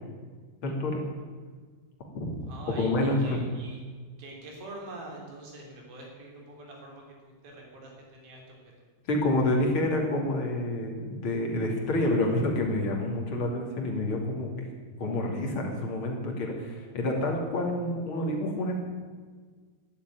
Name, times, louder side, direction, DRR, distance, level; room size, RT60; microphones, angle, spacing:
voice 1, 0.6-1.0 2.1-2.5 2.8-3.4 9.1-14.7 15.0-18.8, left 1 dB, 35° left, 0 dB, 2.8 m, -28 dB
voice 2, 2.5-3.8 4.2-8.4, right 2 dB, 55° right, 0 dB, 5.1 m, -44 dB
12.0 x 11.5 x 9.7 m, 1.5 s
omnidirectional pair, 5.1 m